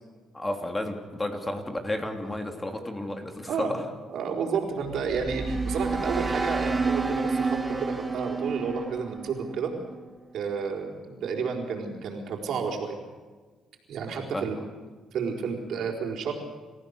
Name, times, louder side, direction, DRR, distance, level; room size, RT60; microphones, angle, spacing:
voice 1, 0.3-3.8 14.3-14.6, left 1 dB, 15° left, 4 dB, 2.8 m, -32 dB
voice 2, 4.1-9.7 10.3-13.0 13.9-14.6 15.1-16.3, right 5 dB, 70° right, 2 dB, 4.3 m, -31 dB
sound 1, 4.8-10.0, right 3 dB, 20° right, 2.1 m, -29 dB
29.0 x 15.0 x 6.8 m, 1.4 s
cardioid pair, 90°, 0 cm